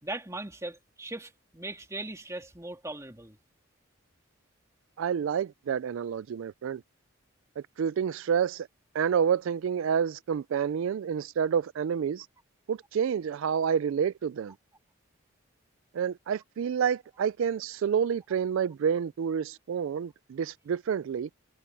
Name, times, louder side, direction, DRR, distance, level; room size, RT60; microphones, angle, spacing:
voice 1, 0.0-3.4, right 2 dB, 15° right, 2.6 m, -39 dB
voice 2, 5.0-6.8 7.6-8.7 8.9-12.3 12.7-14.5 15.9-21.3, right 7 dB, 70° right, 0.3 m, -29 dB
head